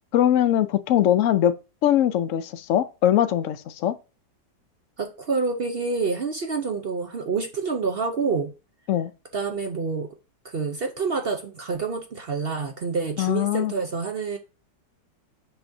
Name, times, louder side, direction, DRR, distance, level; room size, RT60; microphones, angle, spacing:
voice 1, 0.1-1.5 1.8-3.9 8.9-9.1 13.2-13.7, left 11 dB, 65° left, 0.8 m, -21 dB
voice 2, 5.0-8.5 9.3-10.1 10.4-14.4, right 4 dB, 55° right, 0.6 m, -27 dB
7.0 x 5.8 x 2.7 m
omnidirectional pair, 1.8 m